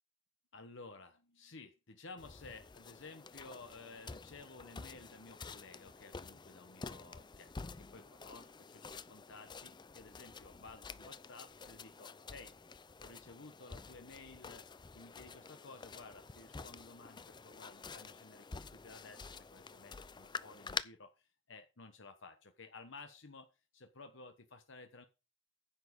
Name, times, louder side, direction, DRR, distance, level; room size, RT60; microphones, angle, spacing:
voice 1, 0.5-12.5 13.0-14.7 14.9-23.5 23.7-25.1, left 3 dB, 65° left, 7 dB, 1.2 m, -54 dB
sound 1, 2.2-20.8, left 4 dB, 20° left, 0.5 m, -49 dB
10.5 x 7.2 x 5.2 m, 0.30 s
head